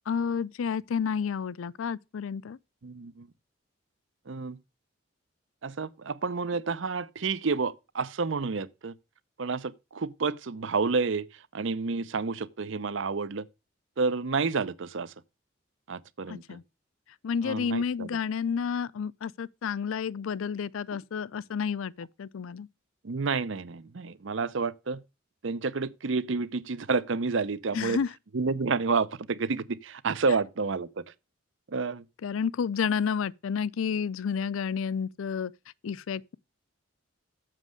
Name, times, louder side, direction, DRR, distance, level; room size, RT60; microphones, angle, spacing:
voice 1, 0.1-2.6 16.3-16.6 17.2-22.7 27.7-28.1 32.2-35.5 35.8-36.4, left 6 dB, 80° left, 0.4 m, -30 dB
voice 2, 2.8-3.3 4.3-4.6 5.6-8.9 9.4-11.3 11.5-13.4 14.0-15.1 15.9-16.6 17.4-18.2 23.0-25.0 25.4-28.0 28.3-31.0 31.7-32.0, right 4 dB, 65° right, 0.6 m, -30 dB
7.5 x 6.2 x 6.3 m
head